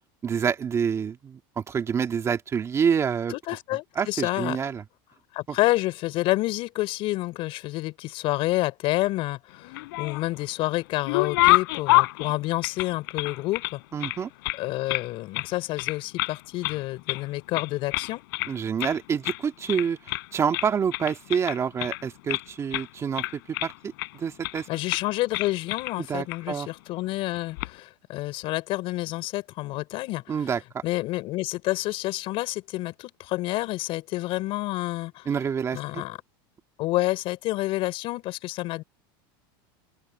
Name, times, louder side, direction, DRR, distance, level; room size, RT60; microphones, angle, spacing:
voice 1, 0.2-3.3 4.0-4.8 5.5-5.6 13.9-14.3 18.5-24.7 26.0-26.7 30.3-30.8 35.3-36.0, right 7 dB, 25° right, 2.2 m, -27 dB
voice 2, 3.3-4.6 5.3-13.8 14.6-18.2 24.7-30.2 30.8-35.3 35.7-36.2 36.8-38.8, left 18 dB, 50° left, 4.6 m, -29 dB
sound 1, 9.6-10.4 10.8-13.7 14.0-15.1 15.3-15.5 15.8-16.4 16.6-17.3 17.5-18.5 18.8-19.0 19.2-19.4 19.7-20.3 20.5-22.4 22.7-22.9 23.2-24.1 24.4-24.6 24.9-25.1 25.3-26.0 26.3-26.4 27.4-27.7, left 22 dB, 75° left, 4.9 m, -27 dB
open air
supercardioid pair, 135°, 12 cm